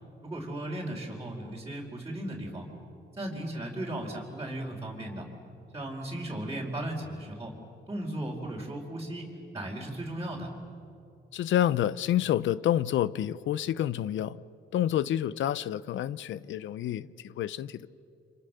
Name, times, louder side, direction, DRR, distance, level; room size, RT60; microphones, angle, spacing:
voice 1, 0.2-2.7 3.2-5.3 5.7-7.5 7.9-9.3 9.5-10.5, right 1 dB, 15° right, 4.5 m, -36 dB
voice 2, 11.3-14.4 14.7-17.9, left 11 dB, 70° left, 0.7 m, -28 dB
30.0 x 26.5 x 6.8 m
cardioid pair, 90°, 20 cm